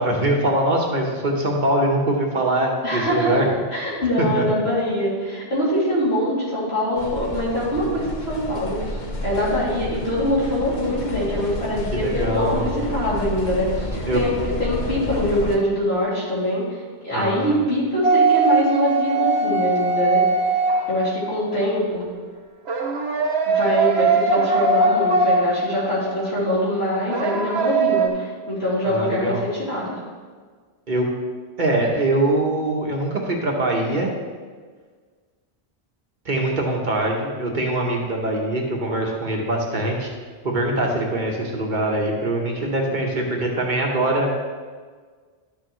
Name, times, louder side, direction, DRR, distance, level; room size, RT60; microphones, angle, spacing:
voice 1, 0.0-3.5 4.2-4.4 11.9-12.8 14.0-14.2 17.1-17.5 28.8-29.4 30.9-31.1 31.6-34.1 36.2-40.1 40.4-44.3, right 1 dB, 50° right, 0 dB, 1.3 m, -23 dB
voice 2, 2.8-3.4 3.7-14.3 14.6-20.2 20.9-22.1 23.5-29.9, equal, 75° left, -7 dB, 3.1 m, -23 dB
sound 1, 7.0-15.6, left 2 dB, 45° left, 1.0 m, -30 dB
sound 2, 18.0-21.5 22.7-26.1 27.1-28.1, right 3 dB, 75° right, 1.1 m, -20 dB
11.5 x 6.9 x 3.1 m, 1.5 s
omnidirectional pair, 1.1 m